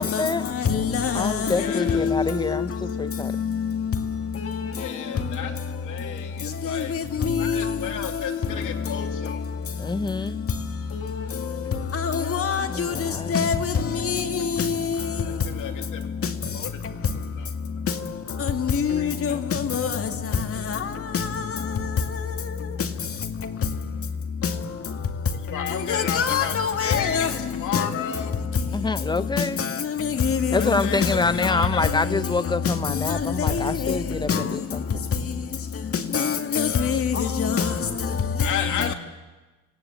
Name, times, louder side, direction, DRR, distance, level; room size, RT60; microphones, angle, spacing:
voice 1, 0.0-0.5 1.1-3.4 4.7-6.5 9.8-10.5 12.7-13.5 28.7-29.6 30.5-35.0 37.4-38.5 38.8-38.9, left 3 dB, 15° left, 0.9 m, -28 dB
voice 2, 0.5-2.6 3.4-3.6 6.7-6.8 7.2-7.7 12.0-13.7 14.0-15.0 18.5-19.4 19.7-20.0 21.1-21.2 25.9-27.3 27.7-27.8 29.4-29.5 30.0-31.1 33.4-33.9 34.3-34.4 36.1-37.7 38.8-38.9, left 6 dB, 40° left, 2.2 m, -24 dB
voice 3, 1.6-2.3 4.7-5.5 5.8-6.9 7.4-9.4 15.2-16.1 16.5-17.0 17.4-17.5 19.0-19.4 25.5-26.5 26.8-28.4 30.5-32.0 36.5-37.0 38.4-38.9, left 9 dB, 65° left, 2.8 m, -33 dB
26.5 x 17.0 x 8.5 m
supercardioid pair, 90°, 33 cm